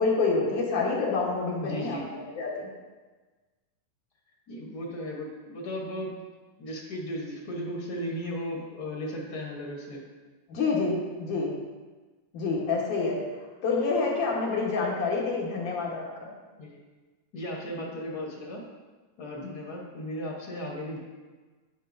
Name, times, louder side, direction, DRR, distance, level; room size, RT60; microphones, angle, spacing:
voice 1, 0.0-2.7 10.5-11.5 12.3-13.2 13.6-16.3, left 4 dB, 70° left, -4 dB, 2.7 m, -27 dB
voice 2, 1.6-2.0 4.5-6.1 6.6-10.0 16.6-16.8 17.3-18.6 19.2-21.0, equal, 90° left, -2 dB, 0.8 m, -35 dB
9.9 x 7.7 x 2.6 m, 1.3 s
omnidirectional pair, 3.7 m